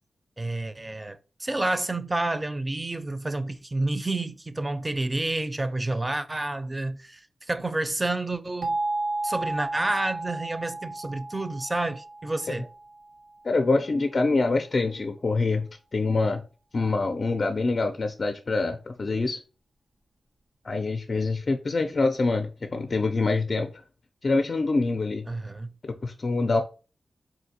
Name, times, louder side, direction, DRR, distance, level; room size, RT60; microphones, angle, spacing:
voice 1, 0.4-7.2 7.5-8.8 9.2-12.7 25.3-25.7, right 2 dB, 30° right, 0.4 m, -29 dB
sound 1, 8.6-13.3, right 2 dB, 80° right, 0.5 m, -33 dB
voice 2, 13.4-16.4 16.7-19.4 20.6-23.7 24.2-25.3 25.8-26.6, left 3 dB, 55° left, 0.4 m, -25 dB
3.8 x 2.5 x 2.7 m
cardioid pair, 45°, 0 cm